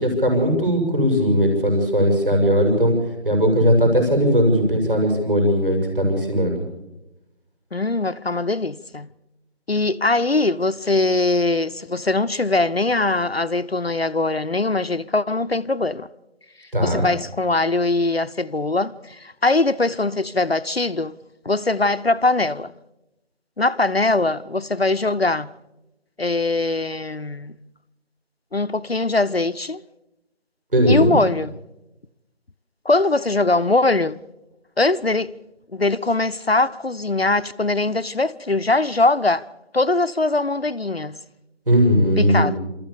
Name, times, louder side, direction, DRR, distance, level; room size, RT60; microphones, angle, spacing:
voice 1, 0.0-2.9 3.2-6.6 16.7-17.0 30.7-31.2 41.7-42.6, equal, 50° right, 6.6 m, -18 dB
voice 2, 7.7-9.1 9.7-16.1 16.8-21.1 21.4-22.7 23.6-25.5 26.2-27.6 28.5-29.8 30.9-31.5 32.9-34.2 34.8-35.3 35.7-39.4 39.7-41.2 42.2-42.6, left 2 dB, 60° left, 0.7 m, -21 dB
28.5 x 14.0 x 7.0 m
figure-of-eight pair, 170°, 35 cm